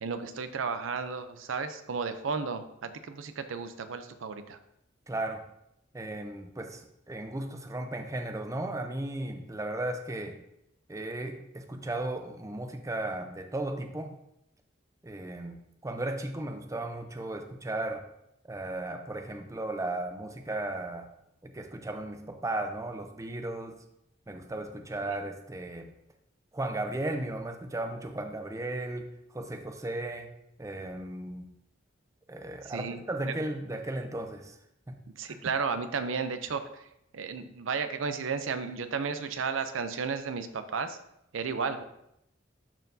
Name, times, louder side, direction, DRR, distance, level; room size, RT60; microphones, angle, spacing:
voice 1, 0.0-4.6 32.7-33.0 33.2-33.3 35.2-36.9 37.1-41.0 41.3-41.8, right 5 dB, 80° right, 10 dB, 0.5 m, -33 dB
voice 2, 5.1-5.4 5.9-10.4 10.9-14.2 15.0-18.0 18.4-21.1 21.4-23.8 24.3-25.9 26.5-30.3 30.6-31.5 32.3-34.6 34.9-35.0 35.3-35.4, right 2 dB, 15° right, 6 dB, 0.5 m, -35 dB
12.0 x 4.4 x 2.7 m, 0.79 s
head